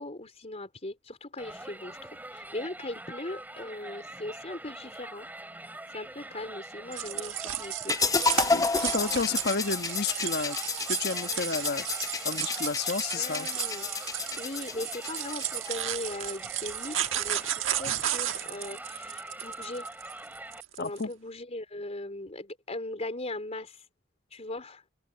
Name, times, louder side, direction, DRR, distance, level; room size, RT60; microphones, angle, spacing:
voice 1, 0.0-5.6 5.9-8.0 13.1-13.9 14.4-19.9 20.8-23.9 24.3-24.8, left 1 dB, 35° left, 4.2 m, -39 dB
Crowd, 1.4-20.6, right 1 dB, 10° right, 2.6 m, -44 dB
sound 1, 6.9-21.0, right 11 dB, 75° right, 1.5 m, -34 dB
sound 2, 7.9-15.9, left 4 dB, 15° left, 0.6 m, -31 dB
voice 2, 8.5-10.6 10.9-11.9 12.2-13.5 20.8-21.1, left 4 dB, 55° left, 1.2 m, -31 dB
head